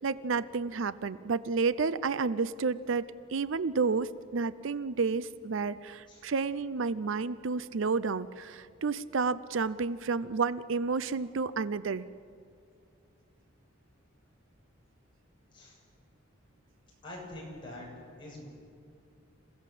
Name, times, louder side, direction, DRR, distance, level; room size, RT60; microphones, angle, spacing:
voice 1, 0.0-3.1 3.3-12.1, right 4 dB, 70° right, 16 dB, 0.5 m, -30 dB
voice 2, 17.0-17.9 18.2-18.5, left 1 dB, 25° left, -4 dB, 7.6 m, -44 dB
28.0 x 16.0 x 7.6 m, 2.4 s
head